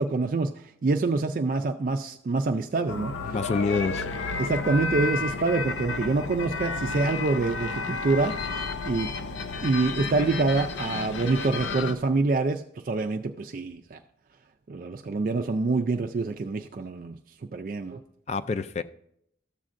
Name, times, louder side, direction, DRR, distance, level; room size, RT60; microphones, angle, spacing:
voice 1, 0.0-3.3 4.4-8.4 8.8-9.1 9.6-14.0 14.7-17.2 17.5-18.0, right 3 dB, 45° right, 6 dB, 0.3 m, -26 dB
sound 1, 2.9-11.9, left 4 dB, 85° left, 0.6 m, -32 dB
voice 2, 3.3-4.1 18.3-18.8, left 4 dB, 35° left, 13 dB, 0.3 m, -27 dB
13.5 x 7.4 x 2.5 m, 0.73 s
head